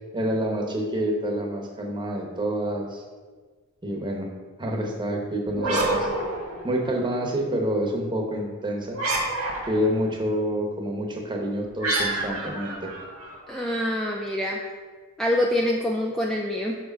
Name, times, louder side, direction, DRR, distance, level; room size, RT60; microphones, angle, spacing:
voice 1, 0.1-3.0 3.8-4.3 4.6-6.1 6.6-9.0 9.6-12.9, equal, 20° right, 0 dB, 1.0 m, -27 dB
sound 1, 5.5-7.1 8.9-10.0 11.8-13.7, right 2 dB, 85° right, 1.8 m, -28 dB
voice 2, 13.5-14.6 15.2-16.8, left 1 dB, ahead, -1 dB, 0.4 m, -25 dB
6.2 x 5.0 x 5.2 m, 1.4 s
head